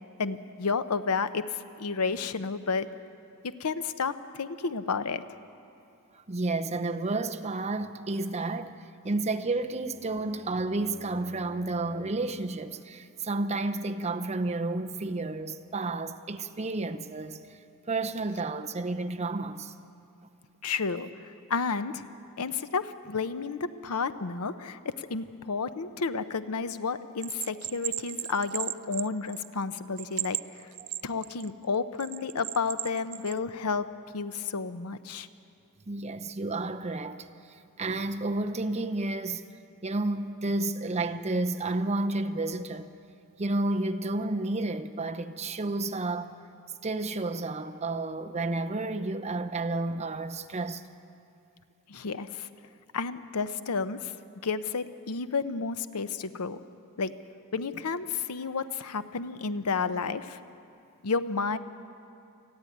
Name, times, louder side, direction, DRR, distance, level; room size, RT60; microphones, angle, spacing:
voice 1, 0.2-2.9 3.4-5.2 20.6-22.0 22.4-30.7 31.0-33.8 34.1-35.3 51.9-52.5 52.9-54.1 54.4-56.6 57.0-57.1 57.5-60.4 61.0-61.6, left 4 dB, 90° left, 0.7 m, -31 dB
voice 2, 6.3-8.8 9.0-17.6 17.9-19.7 35.9-37.3 37.8-39.4 39.8-42.9 43.4-46.3 46.8-50.8, right 2 dB, 30° right, 0.7 m, -31 dB
Bowed string instrument, 9.2-12.3, equal, 65° left, 3.4 m, -50 dB
Bell, 27.2-29.6 30.0-31.5 32.0-33.4, right 17 dB, 80° right, 0.4 m, -35 dB
28.5 x 9.8 x 9.3 m
head